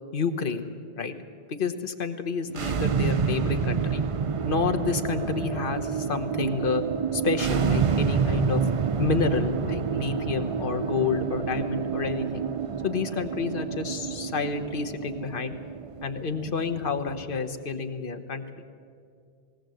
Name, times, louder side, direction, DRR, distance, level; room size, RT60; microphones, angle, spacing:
voice 1, 0.1-0.7 1.0-1.2 1.5-4.0 4.5-6.8 7.1-8.6 9.0-12.4 12.8-15.6 16.0-18.4, left 5 dB, 50° left, 8 dB, 1.3 m, -29 dB
sound 1, 2.5-17.4, right 6 dB, 40° right, 0.5 m, -28 dB
19.5 x 18.0 x 7.8 m, 2.3 s
omnidirectional pair, 1.2 m